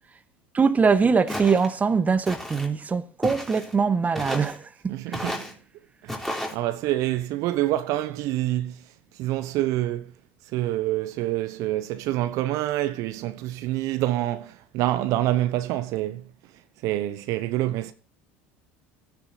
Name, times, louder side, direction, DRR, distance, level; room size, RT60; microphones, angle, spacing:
voice 1, 0.5-5.4, right 5 dB, 25° right, 1.2 m, -23 dB
Walk footsteps, 1.3-1.7 2.3-2.7 3.2-3.7 4.2-4.6 5.1-5.5 6.1-6.6, left 1 dB, 5° left, 3.5 m, -32 dB
voice 2, 4.9-5.5 6.0-8.8 9.2-10.1 10.5-16.3 16.8-17.9, right 15 dB, 60° right, 0.9 m, -27 dB
13.0 x 10.0 x 4.1 m
hypercardioid pair, 75°, 6 cm